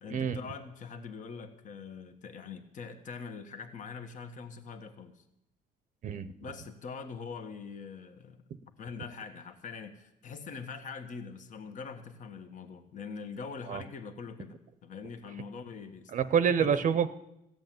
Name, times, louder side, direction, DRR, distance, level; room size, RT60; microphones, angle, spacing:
voice 1, 0.0-5.2 6.4-8.4 8.8-16.1 16.6-16.8, left 5 dB, 50° left, 7 dB, 1.5 m, -43 dB
voice 2, 16.1-17.1, right 7 dB, 50° right, 13 dB, 0.7 m, -27 dB
15.5 x 8.0 x 9.3 m, 0.84 s
cardioid pair, 110°, 17 cm